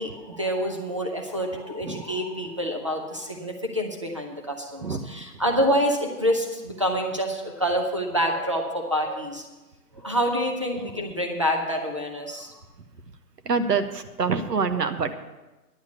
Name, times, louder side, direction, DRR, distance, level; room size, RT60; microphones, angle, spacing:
voice 1, 0.0-9.4 9.9-12.5, equal, 20° right, 2 dB, 0.6 m, -27 dB
voice 2, 4.8-5.1 13.4-15.1, right 5 dB, 85° right, 10 dB, 1.2 m, -26 dB
10.5 x 6.7 x 8.1 m, 1.1 s
hypercardioid pair, 170°, 47 cm